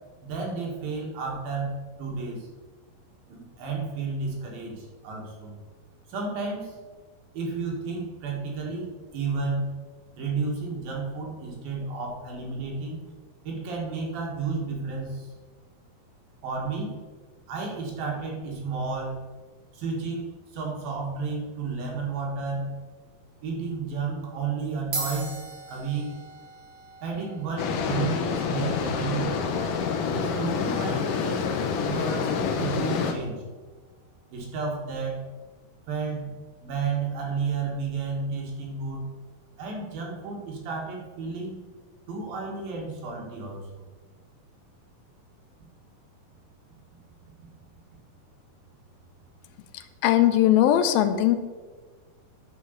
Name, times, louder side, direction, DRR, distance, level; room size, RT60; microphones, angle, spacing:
voice 1, 0.2-2.5 3.3-5.6 6.1-6.8 7.3-9.8 10.2-13.0 13.4-15.3 16.4-17.0 17.5-19.2 19.7-20.3 20.5-22.8 23.4-25.4 25.7-26.2 27.0-29.4 30.1-31.5 31.8-33.4 34.3-35.2 35.9-36.3 36.6-39.1 39.6-41.6 42.1-43.6, right 4 dB, 80° right, -1 dB, 3.6 m, -32 dB
sound 1, 23.3-23.6 24.4-24.5 24.8-33.5, right 3 dB, 50° right, 3.4 m, -42 dB
sound 2, 27.6-33.1, left 6 dB, 70° left, 2.3 m, -27 dB
voice 2, 50.0-51.4, left 12 dB, 90° left, 9 dB, 2.5 m, -19 dB
9.6 x 5.0 x 6.8 m, 1.4 s
omnidirectional pair, 4.2 m